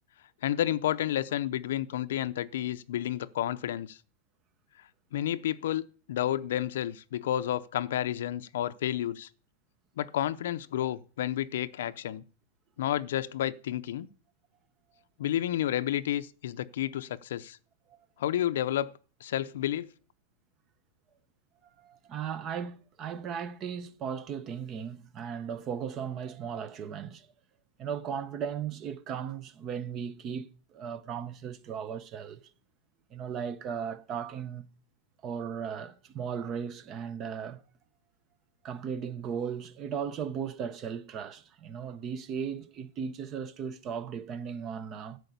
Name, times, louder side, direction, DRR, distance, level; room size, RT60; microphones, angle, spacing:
voice 1, 0.4-4.0 5.1-5.8 6.1-9.3 10.0-12.2 12.8-14.1 15.2-17.6 18.2-18.9 19.2-19.9, left 12 dB, 70° left, 0.6 m, -30 dB
voice 2, 21.8-27.3 27.8-32.4 33.1-34.7 35.2-37.6 38.6-45.2, right 7 dB, 25° right, 0.7 m, -36 dB
11.5 x 4.8 x 8.2 m
supercardioid pair, 165°, 0 cm